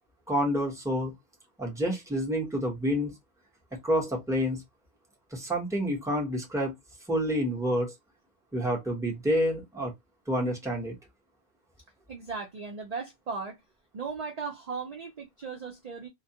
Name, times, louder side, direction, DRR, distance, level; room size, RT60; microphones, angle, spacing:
voice 1, 0.3-1.1 1.6-3.1 3.8-4.6 5.3-6.7 7.1-7.9 8.5-9.9 10.3-10.9, equal, 5° right, 0.7 m, -28 dB
voice 2, 12.1-13.6 13.9-16.1, right 5 dB, 55° right, 0.4 m, -37 dB
2.3 x 2.1 x 2.7 m
omnidirectional pair, 1.2 m